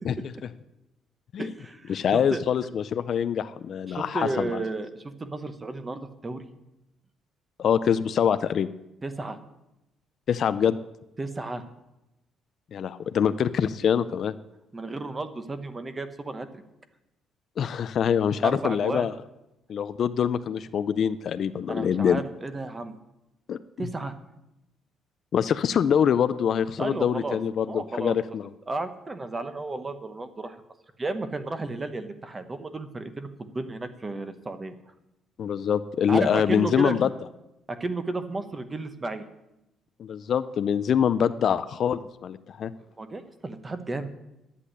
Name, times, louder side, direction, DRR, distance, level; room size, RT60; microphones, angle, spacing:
voice 1, 1.4-2.4 3.9-6.5 9.0-9.4 11.2-11.6 14.7-16.6 18.4-19.1 21.7-22.9 23.8-24.1 26.8-27.4 27.7-28.2 28.7-30.6 31.0-34.7 36.1-37.0 37.7-39.2 43.0-44.1, right 2 dB, 15° right, 10 dB, 0.9 m, -33 dB
voice 2, 1.9-4.6 7.6-8.7 10.3-10.8 12.7-14.3 17.6-19.1 19.7-22.2 23.5-23.6 25.3-28.5 35.4-37.1 40.0-42.7, left 8 dB, 40° left, 13 dB, 0.4 m, -24 dB
11.0 x 8.2 x 9.9 m, 0.93 s
cardioid pair, 170°, 0 cm